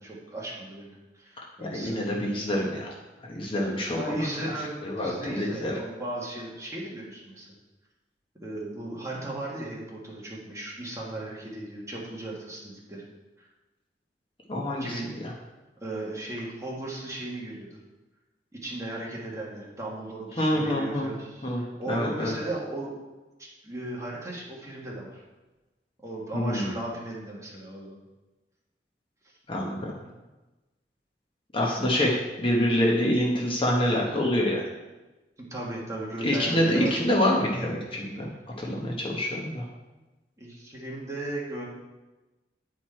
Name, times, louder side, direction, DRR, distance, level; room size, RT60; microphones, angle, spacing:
voice 1, 0.0-2.0 3.5-3.6 4.0-7.5 8.4-13.1 13.4-13.5 14.8-15.1 15.8-17.8 18.5-22.9 23.4-25.2 26.0-28.0 30.0-30.1 35.4-36.9 40.4-41.7, right 1 dB, 20° right, -4 dB, 1.5 m, -36 dB
voice 2, 1.6-2.9 3.2-4.1 4.8-5.8 14.5-15.3 20.4-21.1 21.4-22.4 26.3-26.7 29.5-29.9 31.5-34.6 36.2-38.3 38.6-39.7, left 1 dB, 30° left, -2 dB, 1.1 m, -26 dB
9.4 x 4.6 x 4.4 m, 1.1 s
head